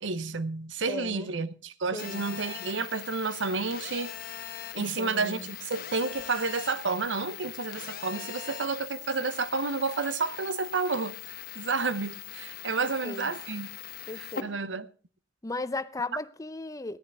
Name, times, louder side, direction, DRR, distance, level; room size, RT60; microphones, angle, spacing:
voice 1, 0.0-4.1 4.7-11.2 11.6-13.7 14.2-14.9, right 4 dB, 80° right, 0.8 m, -30 dB
voice 2, 0.9-1.3 1.9-2.3 4.8-5.5 12.8-13.3 14.1-14.5 15.4-17.0, left 2 dB, 20° left, 0.6 m, -36 dB
Telephone, 2.0-14.4, left 9 dB, 55° left, 1.1 m, -41 dB
16.5 x 10.0 x 4.7 m
head